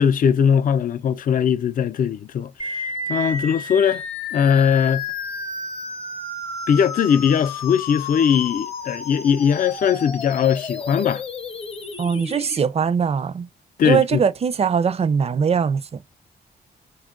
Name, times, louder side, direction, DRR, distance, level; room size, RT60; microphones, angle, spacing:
voice 1, 0.0-4.0 4.3-5.0 6.7-11.2 13.8-14.2, left 7 dB, 55° left, 0.4 m, -20 dB
sound 1, 2.6-12.6, left 3 dB, 35° left, 0.8 m, -32 dB
voice 2, 12.0-13.5 13.8-16.0, right 6 dB, 35° right, 0.4 m, -21 dB
4.4 x 2.3 x 3.6 m
wide cardioid pair, 135°, 17 cm